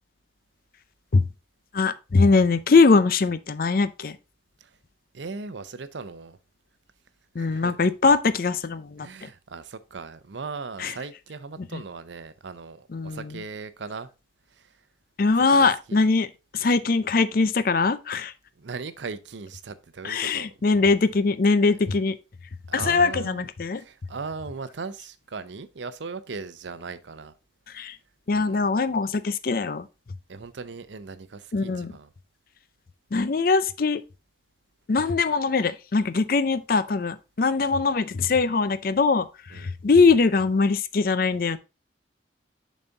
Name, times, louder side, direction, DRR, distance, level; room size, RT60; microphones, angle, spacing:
voice 1, 1.7-4.2 7.3-9.3 10.8-10.9 11.7-11.8 12.9-13.4 15.2-16.3 16.5-18.3 20.0-22.2 22.7-23.8 27.7-28.0 28.3-29.9 31.5-32.0 33.1-34.0 34.9-41.6, left 4 dB, 50° left, 0.5 m, -22 dB
voice 2, 5.1-6.4 7.4-7.9 9.0-14.1 14.5-14.8 15.5-16.0 18.6-20.5 22.7-23.5 23.7-27.3 28.3-28.7 30.3-32.1 39.5-39.8, right 4 dB, 75° right, 0.6 m, -38 dB
7.1 x 4.2 x 3.8 m
head